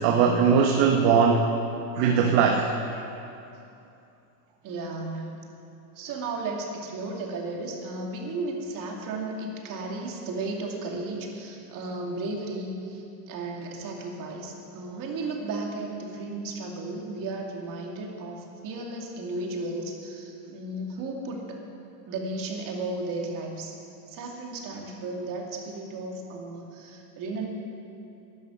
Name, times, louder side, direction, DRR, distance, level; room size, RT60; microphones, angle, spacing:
voice 1, 0.0-1.5 2.0-2.7, right 6 dB, 60° right, 3 dB, 1.3 m, -20 dB
voice 2, 2.9-3.2 4.6-5.4 6.0-21.5 22.1-23.7 24.1-27.5, right 2 dB, 40° right, 0 dB, 2.6 m, -34 dB
11.5 x 11.0 x 7.4 m, 2.7 s
supercardioid pair, 130°, 49 cm